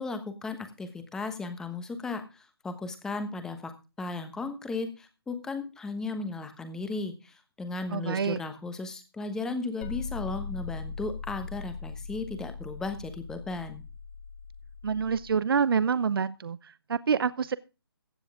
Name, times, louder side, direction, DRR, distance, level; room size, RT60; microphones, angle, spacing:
voice 1, 0.0-3.7 4.0-13.8, left 3 dB, 5° left, 9 dB, 1.2 m, -35 dB
voice 2, 7.9-8.4 14.8-17.6, right 6 dB, 65° right, 17 dB, 0.7 m, -27 dB
sound 1, 9.8-15.3, left 5 dB, 30° left, 1.2 m, -40 dB
15.5 x 9.6 x 3.6 m, 0.30 s
hypercardioid pair, 160°, 13 cm